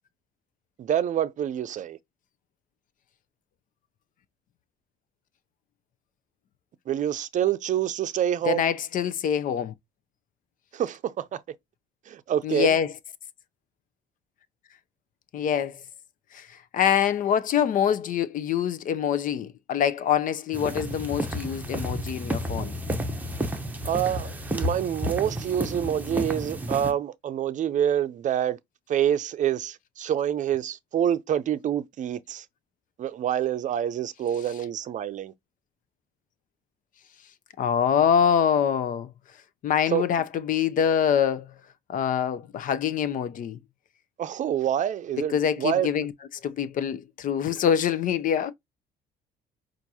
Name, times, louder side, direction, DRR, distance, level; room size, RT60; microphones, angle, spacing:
voice 1, 0.8-2.0 6.9-8.7 10.7-11.4 12.1-12.8 23.8-28.6 28.9-32.5 33.0-35.3 39.9-40.0 44.2-45.9, right 10 dB, 50° right, 0.5 m, -27 dB
voice 2, 8.5-9.7 12.4-12.9 15.3-15.8 16.3-16.5 16.7-22.7 37.6-39.1 39.6-41.5 41.9-43.6 45.3-46.1 46.4-48.5, left 8 dB, 50° left, 0.5 m, -25 dB
sound 1, 20.5-26.9, equal, 10° right, 0.8 m, -31 dB
5.8 x 2.5 x 2.8 m
cardioid pair, 110°, 17 cm